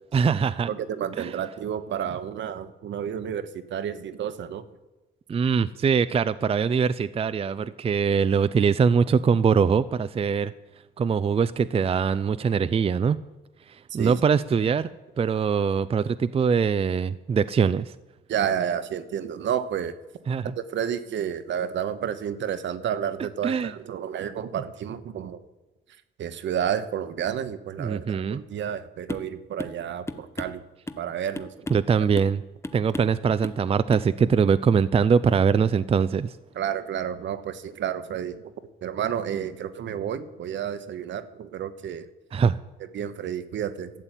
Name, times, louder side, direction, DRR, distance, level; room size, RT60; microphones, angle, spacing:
voice 1, 0.1-0.7 1.2-1.3 5.3-10.5 11.0-13.2 13.9-14.9 15.2-17.9 20.3-20.5 23.4-23.7 27.8-28.4 31.7-32.4 32.7-36.3 42.3-42.6, right 6 dB, 30° right, 13 dB, 0.5 m, -22 dB
voice 2, 0.7-4.6 14.0-14.2 18.3-19.9 20.6-25.4 26.2-30.6 31.0-31.5 36.5-38.5 38.8-42.1 42.9-43.9, right 9 dB, 65° right, 11 dB, 1.1 m, -30 dB
sound 1, 29.1-29.3 29.6-29.8 30.1-31.1 31.4-31.9 32.2-32.4 32.6-33.2 33.4-33.6 33.9-34.1, left 2 dB, 15° left, 0.8 m, -36 dB
12.5 x 7.5 x 9.0 m, 1.1 s
cardioid pair, 90°, 20 cm